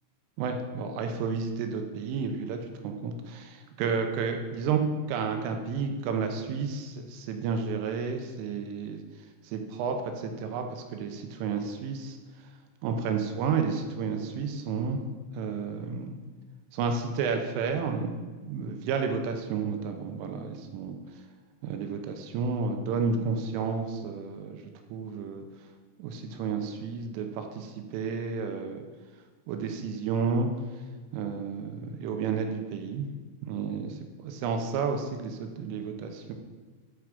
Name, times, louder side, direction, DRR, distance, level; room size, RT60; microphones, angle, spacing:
voice 1, 0.4-2.6 2.8-4.8 5.1-9.0 9.4-12.2 12.8-15.0 15.3-16.2 16.7-18.1 18.4-21.0 21.6-24.6 24.9-25.4 26.0-28.8 29.5-30.5 31.1-33.1 33.4-34.0 34.2-36.3, right 5 dB, 80° right, 5 dB, 3.2 m, -31 dB
11.0 x 4.8 x 5.2 m, 1.4 s
omnidirectional pair, 5.9 m